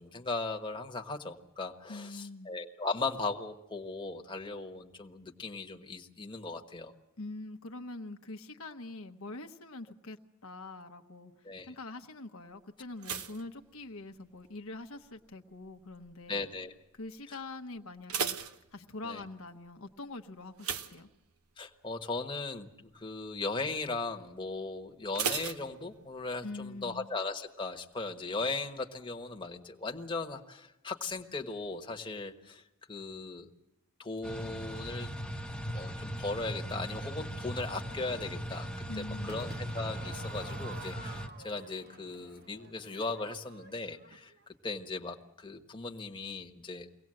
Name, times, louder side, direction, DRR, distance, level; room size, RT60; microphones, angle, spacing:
voice 1, 0.0-6.9 11.4-11.7 16.3-16.7 19.0-19.2 21.6-33.5 34.0-35.1 35.7-38.7 39.0-44.3 44.6-46.9, left 3 dB, 20° left, 3 dB, 1.2 m, -38 dB
voice 2, 1.9-2.5 7.2-11.3 11.6-16.5 17.0-21.1 26.4-27.1 38.9-39.4, left 2 dB, 65° left, 5 dB, 1.0 m, -44 dB
sound 1, 13.0-14.5 14.7-15.3 15.9-16.2 16.5-16.6 17.0-17.1 17.8-19.3 20.6-21.7 22.1-22.3 22.7-22.8 25.1-26.4 26.6-26.7, right 7 dB, 80° right, 0.9 m, -37 dB
sound 2, 34.2-41.3, equal, 5° left, 1.0 m, -39 dB
Crowd / Fireworks, 39.3-44.5, right 3 dB, 45° right, 1.3 m, -50 dB
23.5 x 18.0 x 7.7 m, 0.88 s
head